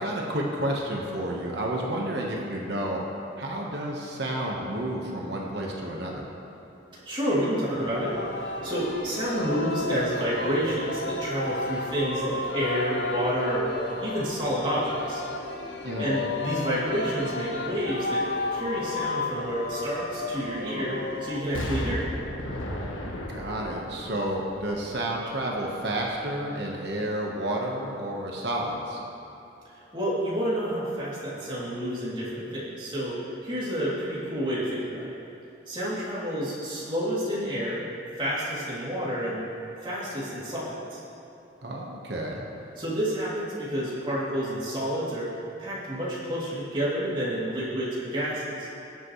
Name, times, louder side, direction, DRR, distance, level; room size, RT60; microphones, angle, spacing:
voice 1, 0.0-3.0 3.4-6.3 15.8-16.2 23.3-29.0 41.6-42.4, right 1 dB, 55° right, -2 dB, 1.3 m, -30 dB
voice 2, 7.0-15.2 16.0-18.2 18.5-22.0 29.6-35.1 35.7-37.8 38.2-39.4 39.8-41.0 42.8-45.3 45.6-48.7, equal, 25° right, -8 dB, 2.8 m, -29 dB
Singing, 7.7-21.4, left 2 dB, 55° left, 0.8 m, -33 dB
Explosion, 21.5-25.5 25.9-26.0, left 1 dB, 85° left, 1.2 m, -35 dB
19.5 x 8.1 x 3.2 m, 2.8 s
head